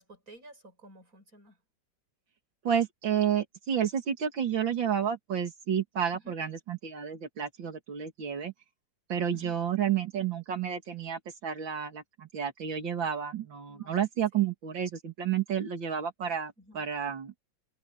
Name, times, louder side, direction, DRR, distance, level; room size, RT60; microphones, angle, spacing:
voice 1, 0.0-1.6 6.1-6.4 9.3-9.6 13.7-14.0 14.3-14.5 16.6-16.8, equal, 45° right, 8.1 m, -53 dB
voice 2, 2.6-8.5 9.1-17.3, right 8 dB, 80° right, 2.8 m, -31 dB
open air
omnidirectional pair, 2.1 m